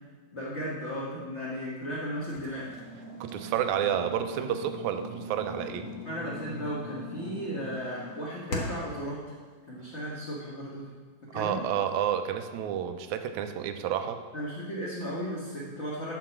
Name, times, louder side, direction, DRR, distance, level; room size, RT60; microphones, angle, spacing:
voice 1, 0.3-2.8 6.0-9.2 9.7-10.9 11.3-11.6 14.3-16.1, equal, 30° left, -8 dB, 1.4 m, -35 dB
sound 1, 2.3-9.0, left 1 dB, 55° left, 0.9 m, -40 dB
voice 2, 3.2-5.9 11.3-14.2, right 9 dB, 80° right, 8 dB, 1.9 m, -30 dB
11.5 x 4.6 x 7.3 m, 1.5 s
omnidirectional pair, 3.5 m